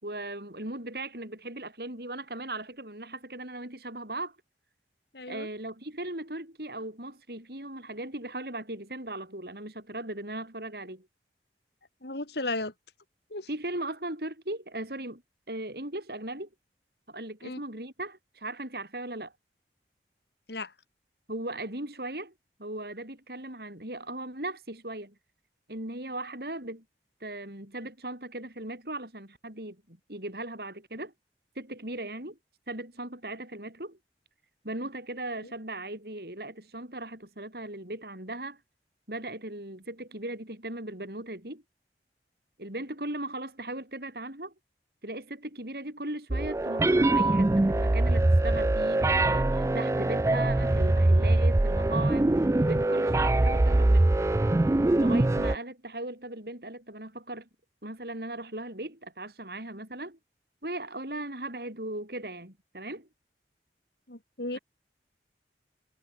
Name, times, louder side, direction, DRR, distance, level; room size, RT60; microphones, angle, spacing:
voice 1, 0.0-4.4 5.3-11.1 13.5-15.2 15.5-16.5 17.1-19.3 21.3-22.3 22.6-25.1 25.7-26.8 27.2-31.1 31.6-32.4 32.7-34.0 34.6-38.6 39.1-41.6 42.6-44.5 45.0-52.4 52.6-54.2 54.9-57.5 57.8-60.2 60.6-63.1 64.5-64.6, right 1 dB, 60° right, 6.2 m, -38 dB
voice 2, 5.1-5.5 12.0-12.7 13.3-13.5 17.4-17.6 20.5-20.7 35.4-35.5 64.1-64.6, left 2 dB, 70° left, 3.6 m, -35 dB
sound 1, 46.3-55.6, right 2 dB, 15° right, 0.3 m, -23 dB
head